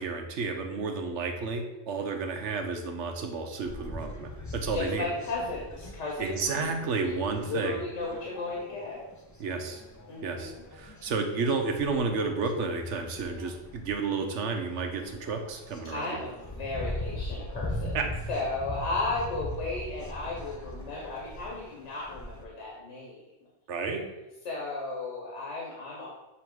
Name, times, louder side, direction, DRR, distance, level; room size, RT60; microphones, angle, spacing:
voice 1, 0.0-5.1 6.2-7.8 9.4-9.8 10.2-16.2 17.9-18.0 23.7-24.1, right 4 dB, 85° right, 4 dB, 1.1 m, -31 dB
sound 1, 3.6-22.4, left 1 dB, 20° left, 0.5 m, -41 dB
voice 2, 4.7-6.7 7.0-9.0 10.1-10.6 15.9-23.2 24.4-26.1, left 2 dB, 85° left, -4 dB, 1.5 m, -35 dB
7.2 x 3.1 x 4.6 m, 1.0 s
omnidirectional pair, 1.2 m